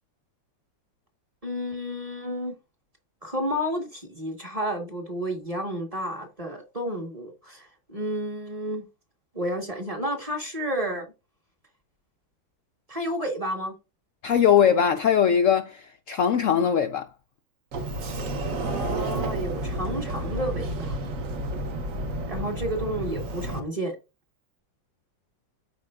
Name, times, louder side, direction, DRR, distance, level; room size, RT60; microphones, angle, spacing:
voice 1, 1.4-2.6 3.2-8.9 9.3-11.1 12.9-13.7 18.6-21.0 22.3-23.9, equal, 20° right, 1.2 m, -31 dB
voice 2, 14.2-17.1, left 8 dB, 80° left, 0.7 m, -21 dB
Sliding door, 17.7-23.6, right 1 dB, 55° right, 1.2 m, -31 dB
13.0 x 4.7 x 2.4 m
omnidirectional pair, 2.0 m